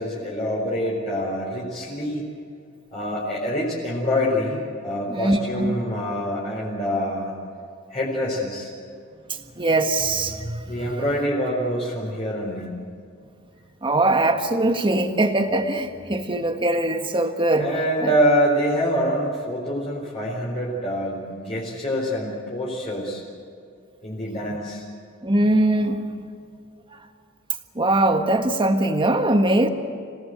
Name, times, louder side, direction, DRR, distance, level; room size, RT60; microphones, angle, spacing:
voice 1, 0.0-2.2 2.9-7.3 7.9-8.7 10.7-12.7 17.6-23.2 24.0-24.8, equal, 30° left, -5 dB, 4.4 m, -25 dB
voice 2, 5.1-5.7 9.3-10.9 13.8-17.7 18.0-18.1 25.2-26.3 26.9-27.0 27.7-29.7, right 1 dB, 25° right, 5 dB, 1.6 m, -22 dB
27.0 x 18.0 x 7.9 m, 2.4 s
head